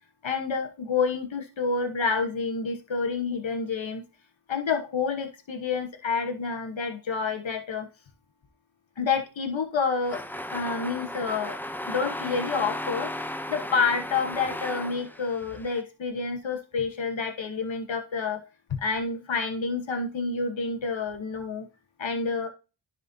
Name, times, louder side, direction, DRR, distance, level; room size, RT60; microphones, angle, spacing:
voice 1, 0.2-4.0 4.5-7.9 9.0-10.2 10.5-11.6 11.9-13.1 13.5-18.4 18.7-21.7 22.0-22.5, left 5 dB, 85° left, 4 dB, 1.2 m, -28 dB
sound 1, 10.0-15.8, left 1 dB, 5° left, 0.6 m, -35 dB
11.0 x 4.3 x 2.7 m, 0.30 s
cardioid pair, 45°, 45 cm